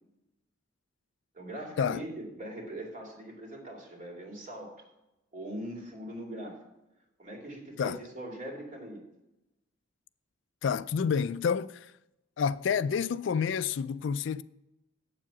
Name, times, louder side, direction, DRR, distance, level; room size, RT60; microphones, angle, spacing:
voice 1, 1.3-4.9 5.3-6.6 7.2-9.0, right 1 dB, 40° right, 2.6 m, -41 dB
voice 2, 10.6-11.9 12.4-14.4, left 6 dB, 60° left, 0.3 m, -29 dB
8.5 x 7.4 x 5.9 m
head